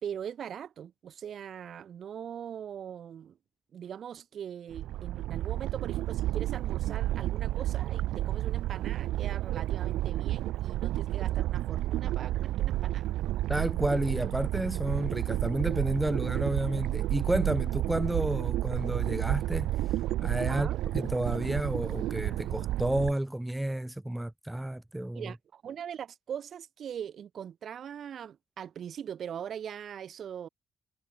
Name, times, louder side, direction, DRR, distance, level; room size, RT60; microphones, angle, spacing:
voice 1, 0.0-3.4 3.7-13.1 20.5-20.8 25.1-30.5, right 8 dB, 60° right, 1.9 m, -41 dB
sound 1, 4.7-23.1, right 15 dB, 90° right, 0.8 m, -31 dB
voice 2, 13.5-19.7 20.2-20.7 20.9-25.3, right 1 dB, 10° right, 0.4 m, -31 dB
cardioid pair, 90°, 0 cm